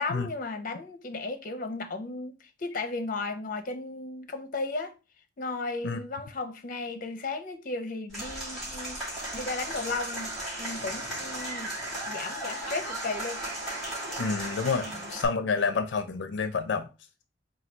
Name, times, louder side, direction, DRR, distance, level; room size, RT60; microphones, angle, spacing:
voice 1, 0.0-4.9 5.4-9.0 9.3-10.3 10.6-11.7 12.1-13.4 14.8-15.1, left 3 dB, 50° left, 0.6 m, -35 dB
Applause / Crowd, 8.1-15.3, right 1 dB, ahead, 2.5 m, -35 dB
voice 2, 14.2-16.9, left 4 dB, 90° left, 0.4 m, -29 dB
4.0 x 2.3 x 4.3 m
head